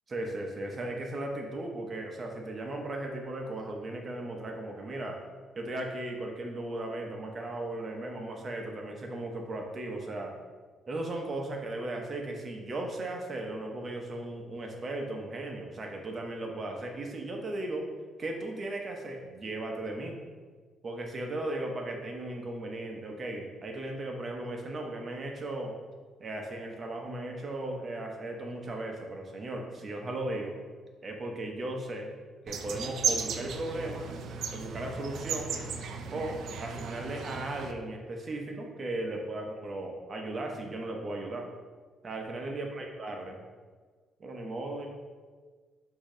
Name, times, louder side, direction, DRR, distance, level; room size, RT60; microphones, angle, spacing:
voice 1, 0.1-5.2 5.5-10.3 10.9-17.9 18.2-20.2 20.8-25.8 26.2-30.6 31.0-32.1 32.4-34.1 34.5-35.5 36.1-41.5 42.0-43.4 44.2-44.9, right 2 dB, 40° right, 2 dB, 0.8 m, -36 dB
sound 1, 32.5-37.7, right 5 dB, 70° right, 0.4 m, -35 dB
5.0 x 2.8 x 3.7 m, 1.5 s
cardioid pair, 90°, 0 cm